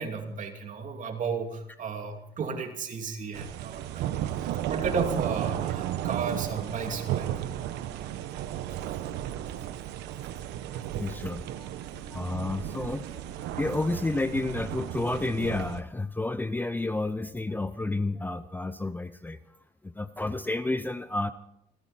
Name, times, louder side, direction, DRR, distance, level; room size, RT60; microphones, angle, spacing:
voice 1, 0.0-4.1 4.7-7.3, right 5 dB, 50° right, 4 dB, 2.7 m, -33 dB
sound 1, 3.3-15.8, right 12 dB, 90° right, 1.1 m, -34 dB
voice 2, 10.7-19.4 19.8-21.3, left 2 dB, 10° left, 11 dB, 0.6 m, -31 dB
29.5 x 10.5 x 4.3 m, 0.76 s
cardioid pair, 110°, 17 cm